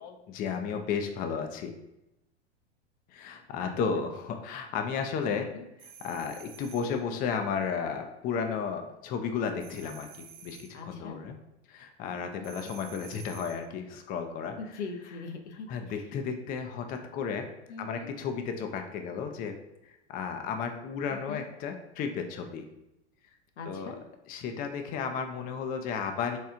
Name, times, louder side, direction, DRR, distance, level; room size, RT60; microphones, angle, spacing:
voice 1, 0.0-1.7 3.1-5.5 5.8-11.4 11.7-14.6 15.7-17.5 17.8-19.6 19.9-22.6 23.6-24.0 24.3-26.4, left 6 dB, 25° left, 6 dB, 0.4 m, -33 dB
voice 2, 3.6-4.0 5.3-5.7 10.7-11.2 12.4-12.8 14.6-15.7 17.7-18.1 21.1-21.4 23.6-24.0, left 4 dB, 80° left, 5 dB, 0.7 m, -42 dB
sound 1, 5.8-7.0 9.6-10.8 12.4-13.7, right 7 dB, 55° right, 0.6 m, -50 dB
4.4 x 2.3 x 3.6 m, 0.88 s
hypercardioid pair, 110°, 34 cm